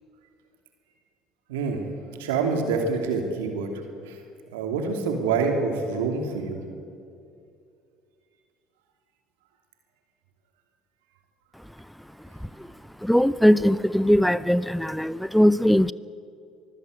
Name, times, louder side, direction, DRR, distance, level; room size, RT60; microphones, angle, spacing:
voice 1, 1.5-1.8 2.2-3.7 4.1-4.2 4.5-6.6, right 4 dB, 80° right, 2.9 m, -26 dB
voice 2, 11.5-15.9, equal, ahead, 0.5 m, -22 dB
24.0 x 15.0 x 8.2 m
hypercardioid pair, 65°, 0 cm